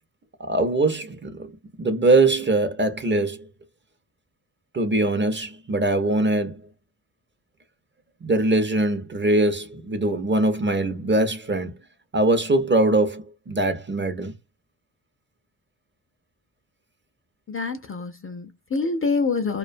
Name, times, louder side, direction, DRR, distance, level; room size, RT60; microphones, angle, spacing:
voice 1, 0.4-1.5 1.8-3.4 4.7-6.6 8.2-11.8 12.1-14.3, right 2 dB, 25° right, 0.6 m, -22 dB
voice 2, 17.5-19.6, left 4 dB, 30° left, 0.4 m, -26 dB
2.5 x 2.2 x 2.5 m
cardioid pair, 85°, 45 cm